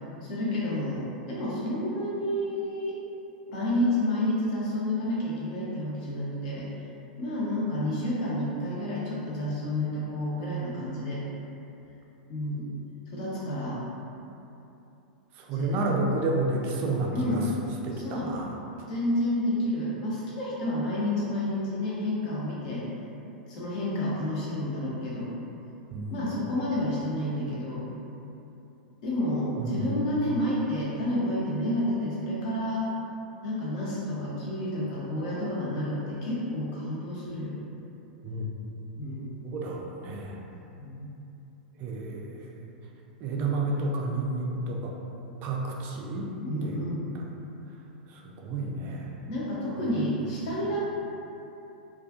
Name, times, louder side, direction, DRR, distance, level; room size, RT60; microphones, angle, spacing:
voice 1, 0.2-3.0 3.5-6.7 7.2-11.2 12.3-12.7 13.1-13.8 15.5-15.8 17.1-17.5 17.9-18.3 18.9-22.8 23.5-25.3 26.1-27.8 29.0-32.8 33.4-37.5 39.0-39.4 40.8-41.1 43.3-43.6 46.4-47.0 49.3-50.8, left 1 dB, 55° left, -6 dB, 0.7 m, -30 dB
voice 2, 15.4-17.5 17.8-18.5 25.9-26.3 29.6-30.1 38.2-38.5 39.4-40.4 41.8-42.7 43.2-44.9 45.4-46.3 46.6-46.8 47.1-47.2 48.1-49.1 49.8-49.9, right 2 dB, 40° right, -1 dB, 0.4 m, -31 dB
2.3 x 2.3 x 2.4 m, 2.9 s
figure-of-eight pair, 95°, 5 cm